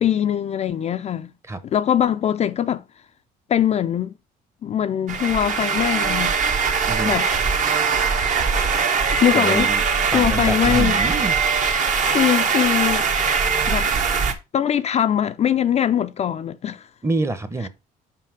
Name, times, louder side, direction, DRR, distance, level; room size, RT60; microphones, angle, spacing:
voice 1, 0.0-1.3 1.7-2.8 3.5-4.1 4.6-6.3 7.1-7.3 8.4-8.5 9.2-9.7 10.1-11.0 12.1-13.1 13.7-13.9 14.5-16.9, left 10 dB, 40° left, 0.4 m, -21 dB
sound 1, 5.1-14.3, right 5 dB, 50° right, 1.2 m, -21 dB
voice 2, 9.3-9.8 10.1-11.4 17.0-17.7, right 2 dB, 15° right, 0.9 m, -26 dB
5.8 x 5.1 x 4.7 m
cardioid pair, 110°, 17 cm